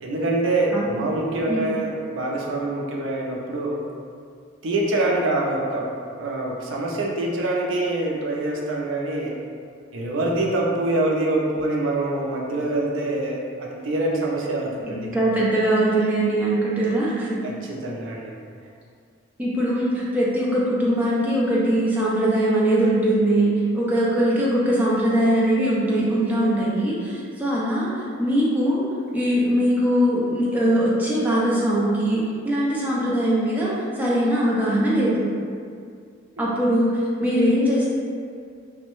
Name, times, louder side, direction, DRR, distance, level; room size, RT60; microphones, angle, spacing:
voice 1, 0.0-3.8 4.6-5.9 6.2-9.3 9.9-15.3 17.4-18.3 36.4-36.5, right 2 dB, 70° right, -2 dB, 0.4 m, -25 dB
voice 2, 14.9-17.4 19.4-28.8 29.1-35.3 36.4-37.9, right 1 dB, 10° right, -7 dB, 0.4 m, -21 dB
2.6 x 2.1 x 3.0 m, 2.2 s
head